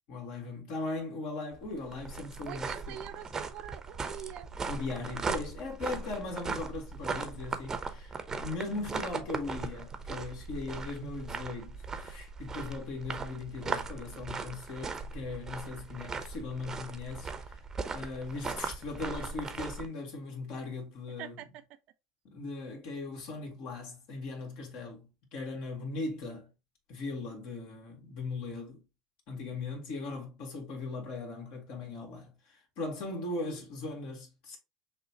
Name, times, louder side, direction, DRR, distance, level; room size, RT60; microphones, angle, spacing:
voice 1, 0.1-3.0 4.7-17.6 17.9-21.4 22.3-26.5 26.9-28.8 29.3-34.6, left 3 dB, 65° left, 2.1 m, -39 dB
sound 1, 1.5-19.9, right 4 dB, 25° right, 0.7 m, -38 dB
voice 2, 2.4-4.5 21.1-21.8, right 13 dB, 60° right, 0.5 m, -44 dB
6.4 x 2.4 x 2.8 m
hypercardioid pair, 95°, 2 cm